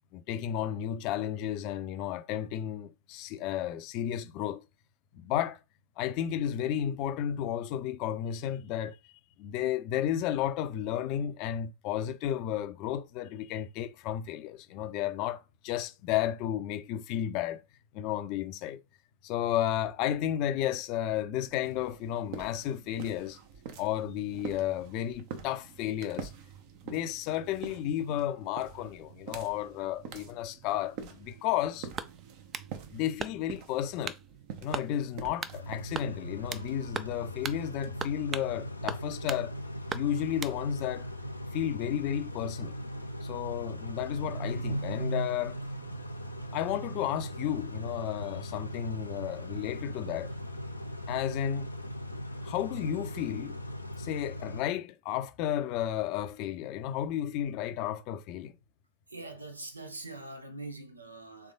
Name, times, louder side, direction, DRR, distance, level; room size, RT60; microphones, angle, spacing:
voice 1, 0.1-4.6 5.1-5.6 6.0-9.0 9.4-17.6 17.9-18.8 19.2-23.4 23.8-26.3 26.8-31.9 32.9-34.2 34.6-39.5 39.9-41.1 41.5-42.8 43.2-45.6 46.5-50.3 51.1-51.7 52.4-53.6 54.0-58.5, left 11 dB, 40° left, 0.6 m, -33 dB
sound 1, 21.4-39.0, right 7 dB, 45° right, 0.8 m, -47 dB
sound 2, 32.0-32.7 33.2-33.6 34.0-34.2 34.7-34.9 35.4-35.6 35.9-36.7 36.9-37.2 37.4-37.6 38.0-38.5 38.9-39.4 39.9-40.6, right 6 dB, 20° right, 0.4 m, -37 dB
Car / Idling / Accelerating revving vroom, 35.5-54.6, equal, 85° left, 0.6 m, -39 dB
voice 2, 59.1-61.5, right 2 dB, 80° right, 0.9 m, -43 dB
3.6 x 3.4 x 3.7 m
figure-of-eight pair, 90°, 0 cm